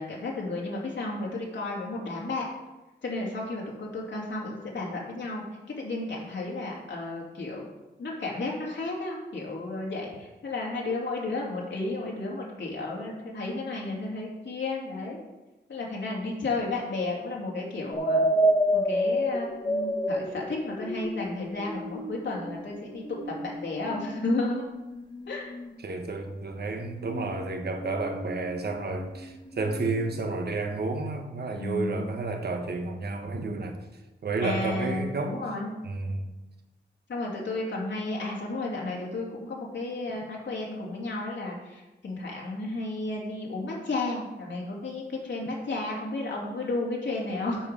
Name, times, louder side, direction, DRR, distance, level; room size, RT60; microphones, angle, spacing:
voice 1, 0.0-2.5 3.0-5.4 5.8-7.7 8.0-15.2 15.7-18.2 18.7-24.6 25.3-25.5 31.5-32.1 34.4-35.7 37.1-47.7, left 2 dB, 80° left, -3 dB, 2.7 m, -33 dB
sound 1, 17.9-25.8 27.0-30.3, equal, 25° left, 1.4 m, -30 dB
voice 2, 25.8-33.8 34.2-35.4 35.8-36.3, right 3 dB, 60° right, 5 dB, 1.1 m, -31 dB
9.0 x 5.0 x 6.7 m, 1.1 s
wide cardioid pair, 115°, 19 cm